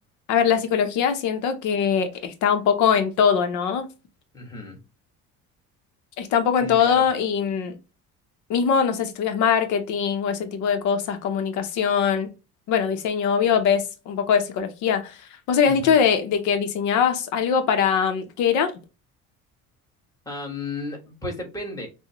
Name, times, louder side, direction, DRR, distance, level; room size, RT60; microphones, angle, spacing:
voice 1, 0.3-3.9 6.2-7.8 8.5-12.3 12.7-18.7, left 7 dB, 70° left, 0.7 m, -22 dB
voice 2, 4.3-4.8 6.5-7.0 15.6-15.9 20.2-21.9, left 2 dB, 10° left, 1.4 m, -34 dB
6.1 x 2.1 x 2.9 m
cardioid pair, 155°, 31 cm